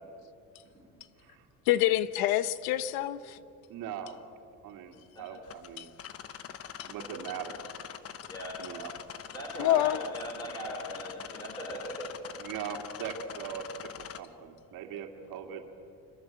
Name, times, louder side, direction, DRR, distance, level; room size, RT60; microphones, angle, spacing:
voice 1, 1.7-3.4 5.8-5.9 6.8-6.9 9.6-10.0, left 14 dB, 90° left, 15 dB, 1.1 m, -26 dB
voice 2, 3.7-4.2 4.6-5.9 6.9-7.6 8.6-8.9 9.6-9.8 12.4-13.9 14.2-15.7, right 8 dB, 70° right, 4 dB, 3.1 m, -40 dB
sound 1, 5.4-14.2, left 9 dB, 40° left, 1.1 m, -44 dB
voice 3, 9.3-12.1, equal, 10° left, -1 dB, 4.7 m, -39 dB
26.0 x 23.0 x 7.7 m, 2.6 s
cardioid pair, 135°, 35 cm